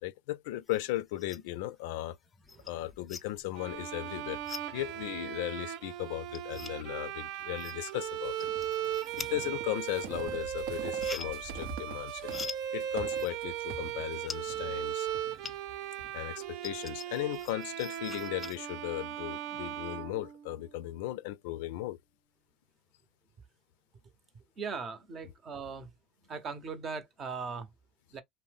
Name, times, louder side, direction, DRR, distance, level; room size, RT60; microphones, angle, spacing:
voice 1, 0.0-2.2 2.7-4.4 4.7-8.5 9.2-15.1 16.1-22.0 25.2-25.3, left 15 dB, 80° left, 0.4 m, -37 dB
sound 1, 0.7-1.6 2.0-15.9 16.2-18.6, left 5 dB, 20° left, 0.5 m, -46 dB
Bowed string instrument, 3.6-20.8, right 10 dB, 60° right, 0.4 m, -38 dB
sound 2, 8.2-16.1, right 5 dB, 80° right, 0.8 m, -46 dB
voice 2, 24.6-25.9 26.3-27.7 28.1-28.2, right 5 dB, 40° right, 0.8 m, -39 dB
2.7 x 2.0 x 3.3 m
supercardioid pair, 110°, 0 cm